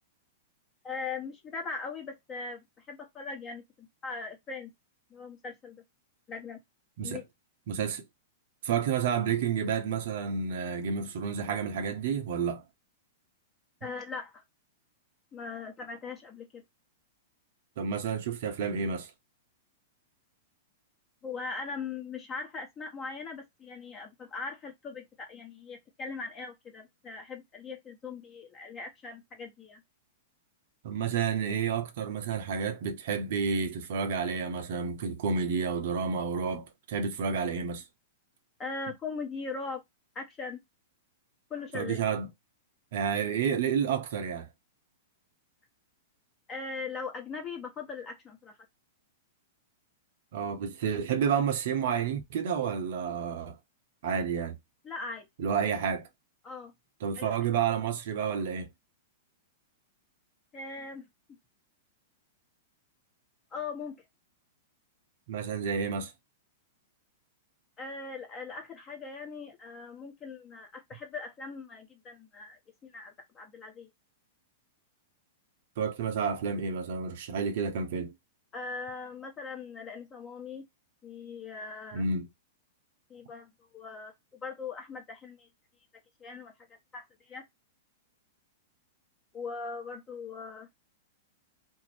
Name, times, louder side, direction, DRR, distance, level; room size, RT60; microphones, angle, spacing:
voice 1, 0.8-4.7 5.1-5.8 6.3-6.6 7.0-7.2 13.8-14.4 15.3-16.6 21.2-29.8 38.6-39.8 40.1-40.6 41.5-42.0 46.5-48.6 54.8-55.3 56.4-56.7 57.2-57.3 60.5-61.1 63.5-64.0 67.8-73.9 78.5-80.7 81.0-82.0 83.1-85.5 86.2-86.5 86.9-87.4 89.3-90.7, left 4 dB, 25° left, 0.9 m, -40 dB
voice 2, 7.7-8.0 8.6-12.6 17.8-19.1 30.8-37.8 41.7-42.3 42.9-44.5 50.3-53.6 54.0-54.6 55.4-56.1 57.0-58.7 65.3-66.1 75.8-78.1 81.9-82.3, right 6 dB, 60° right, 0.6 m, -30 dB
2.5 x 2.0 x 3.1 m
hypercardioid pair, 105°, 0 cm